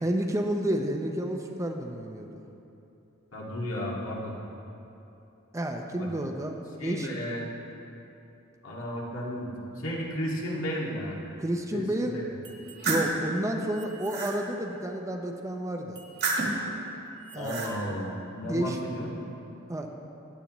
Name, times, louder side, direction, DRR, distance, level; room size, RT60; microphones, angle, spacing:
voice 1, 0.0-2.4 5.5-7.1 11.4-12.2 12.9-16.0 17.3-17.6 18.4-18.8 19.7-19.9, right 1 dB, 15° right, 3 dB, 0.6 m, -30 dB
voice 2, 3.3-4.3 5.9-6.1 6.8-7.5 8.6-11.2 11.7-12.3 17.4-19.1, equal, 75° left, -4 dB, 2.0 m, -33 dB
sound 1, 12.4-13.1 13.7-14.4 16.0-16.7 17.2-17.7, right 3 dB, 55° right, 1.6 m, -30 dB
15.5 x 10.0 x 3.0 m, 2.9 s
head